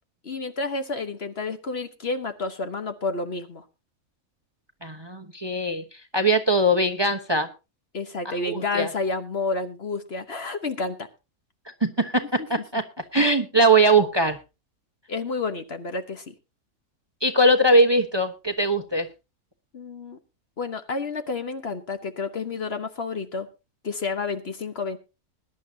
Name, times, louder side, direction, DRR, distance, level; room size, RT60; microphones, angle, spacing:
voice 1, 0.2-3.6 7.9-11.1 12.4-12.5 15.1-16.3 19.7-20.2 20.6-23.5 23.8-25.0, left 3 dB, 45° left, 9 dB, 1.2 m, -30 dB
voice 2, 4.8-5.8 6.1-7.5 8.2-8.9 11.8-12.8 13.1-14.4 17.2-19.1, right 1 dB, 20° right, 6 dB, 1.0 m, -21 dB
20.5 x 11.0 x 2.7 m, 0.28 s
omnidirectional pair, 1.5 m